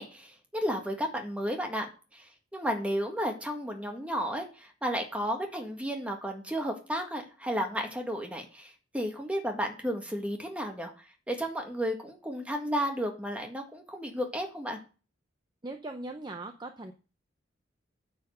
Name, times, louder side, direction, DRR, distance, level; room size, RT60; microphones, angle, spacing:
voice 1, 0.0-10.9 11.3-14.8, equal, 5° right, 3 dB, 1.6 m, -33 dB
voice 2, 15.6-16.9, right 2 dB, 25° right, 5 dB, 0.6 m, -39 dB
9.2 x 4.5 x 6.7 m, 0.34 s
head